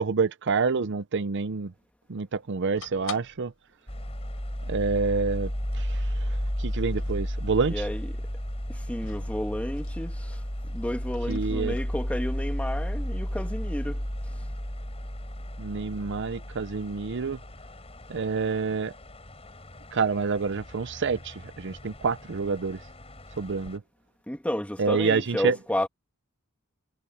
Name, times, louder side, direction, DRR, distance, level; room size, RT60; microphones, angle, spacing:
voice 1, 0.0-1.7 2.1-3.5 4.7-5.5 5.8-5.9 6.6-7.7 11.3-11.7 15.6-17.4 18.1-18.9 19.9-22.8 23.4-23.8 24.8-25.6, right 4 dB, 60° right, 0.6 m, -27 dB
sound 1, 2.7-3.6 4.0-4.1 4.3-4.4 5.2-5.4 6.8-7.8 9.0-10.4 10.7-11.9, left 5 dB, 70° left, 5.4 m, -45 dB
sound 2, 3.9-23.8, equal, 30° left, 5.0 m, -34 dB
voice 2, 7.7-8.2 8.7-10.4 10.7-14.0 14.3-14.4 24.3-25.9, left 1 dB, 5° left, 1.5 m, -32 dB
head